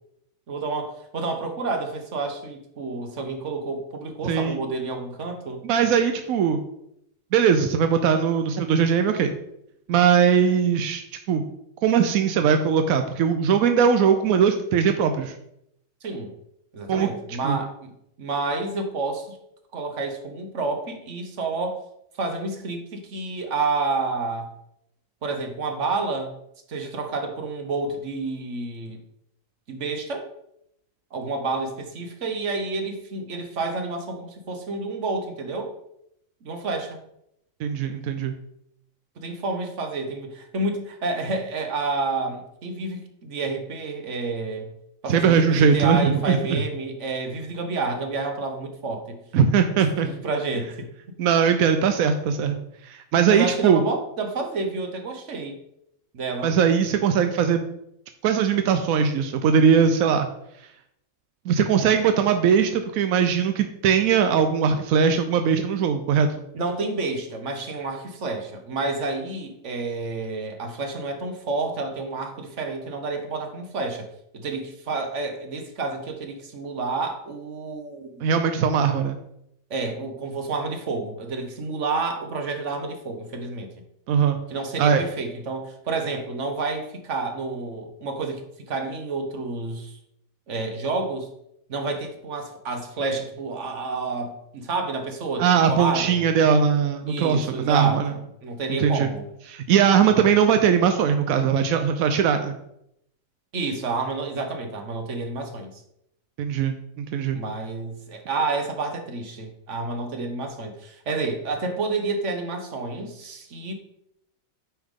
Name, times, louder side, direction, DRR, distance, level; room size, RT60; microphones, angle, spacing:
voice 1, 0.5-5.6 16.0-16.3 16.7-17.9 18.2-19.4 19.7-21.8 22.2-24.5 25.2-26.3 26.7-29.0 29.7-30.3 31.1-35.7 36.4-37.0 39.2-44.7 45.0-49.2 50.0-50.9 53.3-55.6 56.1-56.5 66.5-74.1 74.3-78.2 79.7-83.7 84.5-90.0 90.5-91.3 91.7-96.3 97.1-99.3 100.2-100.3 103.5-105.7 107.3-113.7, right 3 dB, 60° right, 5 dB, 1.3 m, -29 dB
voice 2, 4.2-4.6 5.6-6.6 7.3-9.4 9.9-11.0 11.3-11.4 11.8-15.3 16.9-17.1 17.4-17.6 37.6-38.3 45.1-46.6 49.3-50.1 51.2-52.6 52.9-53.8 56.4-57.7 58.2-60.3 61.5-66.4 78.2-79.2 84.1-84.4 84.8-85.0 95.4-98.1 98.8-99.1 99.5-102.6 106.4-107.4, right 7 dB, 85° right, 7 dB, 1.1 m, -20 dB
8.7 x 5.6 x 3.7 m, 0.77 s
omnidirectional pair, 1.4 m